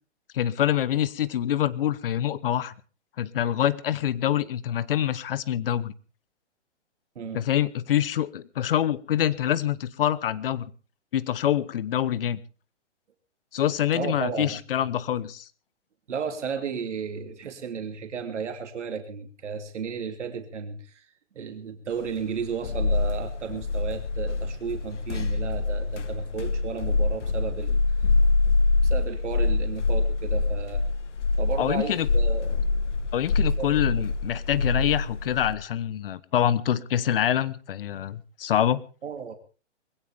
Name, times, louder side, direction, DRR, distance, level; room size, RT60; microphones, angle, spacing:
voice 1, 0.3-2.7 3.2-5.9 7.3-10.7 11.1-12.4 13.5-15.5 31.6-32.1 33.1-38.8, left 11 dB, 50° left, 1.1 m, -25 dB
voice 2, 13.9-14.6 16.1-21.1 21.3-28.1 28.8-30.8 31.4-32.5 33.6-33.7 34.0-34.1 39.0-39.4, right 6 dB, 75° right, 2.9 m, -33 dB
sound 1, 22.1-35.5, left 3 dB, 75° left, 1.5 m, -25 dB
21.0 x 16.5 x 3.5 m
hypercardioid pair, 155°, 36 cm